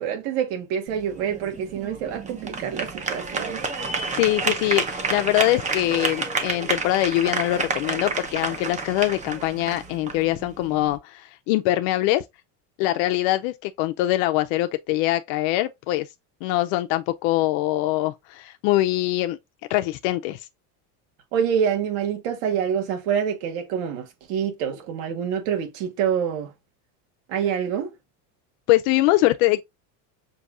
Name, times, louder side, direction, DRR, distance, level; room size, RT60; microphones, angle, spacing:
voice 1, 0.0-3.6 3.9-4.0 21.3-26.5 27.3-27.9, right 8 dB, 80° right, 1.5 m, -26 dB
sound 1, 0.9-11.0, right 4 dB, 15° right, 0.7 m, -30 dB
voice 2, 4.1-12.2 12.8-16.1 16.4-19.4 19.7-20.5 28.7-29.6, left 16 dB, 75° left, 0.5 m, -23 dB
6.8 x 2.6 x 2.4 m
cardioid pair, 160°, 41 cm